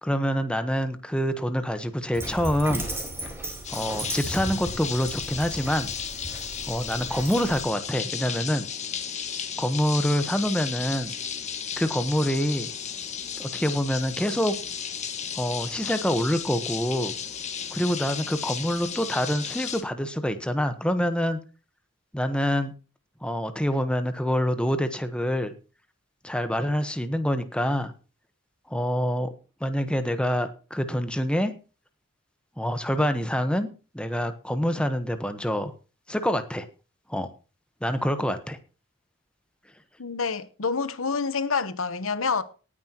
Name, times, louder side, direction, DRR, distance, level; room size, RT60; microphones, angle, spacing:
voice 1, 0.0-2.9 3.7-5.9 6.7-8.7 9.6-11.1 11.8-12.7 13.4-14.5 15.3-17.1 17.7-21.4 22.1-22.7 23.2-25.5 26.2-27.9 28.7-29.3 29.6-31.5 32.6-33.7 33.9-35.7 36.1-36.7 37.1-37.3 37.8-38.6, equal, 5° left, 1.2 m, -26 dB
Dog, 2.1-7.6, right 1 dB, 10° right, 4.2 m, -36 dB
sound 1, 3.6-19.8, left 8 dB, 35° left, 1.7 m, -34 dB
voice 2, 40.0-42.4, left 5 dB, 80° left, 1.0 m, -27 dB
18.5 x 9.8 x 3.0 m
head